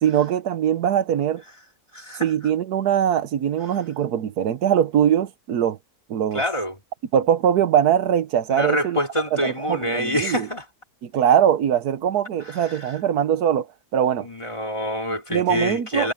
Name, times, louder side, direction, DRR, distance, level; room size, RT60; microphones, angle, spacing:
voice 1, 0.0-1.4 2.2-5.8 6.1-6.4 7.1-9.0 9.3-10.5 11.0-13.7 13.9-14.3 15.3-16.1, right 9 dB, 90° right, 1.4 m, -21 dB
voice 2, 1.9-2.3 6.3-6.8 8.5-10.6 12.4-13.0 14.2-16.1, equal, 20° left, 3.5 m, -26 dB
omnidirectional pair, 1.6 m